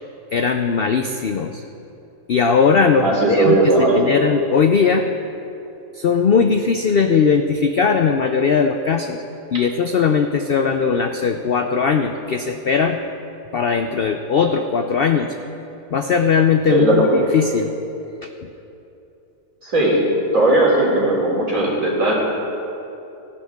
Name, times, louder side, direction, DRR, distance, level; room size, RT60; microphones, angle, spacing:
voice 1, 0.3-1.6 2.3-5.1 6.0-9.2 9.5-13.0 13.5-15.3 15.9-17.7, left 5 dB, 80° left, 6 dB, 0.5 m, -19 dB
voice 2, 3.0-4.1 16.7-17.1 19.6-20.0 20.3-22.1, right 2 dB, 55° right, -3 dB, 3.6 m, -17 dB
17.5 x 15.5 x 3.6 m, 2.8 s
omnidirectional pair, 1.7 m